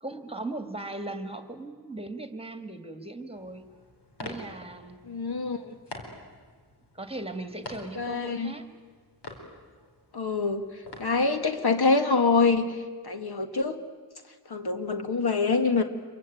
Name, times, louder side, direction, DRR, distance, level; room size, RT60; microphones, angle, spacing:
voice 1, 0.0-3.6 4.2-5.0 6.9-8.7, right 2 dB, 15° right, 8 dB, 1.9 m, -38 dB
sound 1, 3.3-11.8, left 1 dB, 85° left, 4.4 m, -46 dB
voice 2, 5.1-5.7 8.0-8.5 10.1-10.6 11.0-12.8 13.0-13.8 14.5-15.8, left 4 dB, 70° left, 7 dB, 1.9 m, -25 dB
27.0 x 23.5 x 9.2 m, 1.5 s
wide cardioid pair, 120°, 40 cm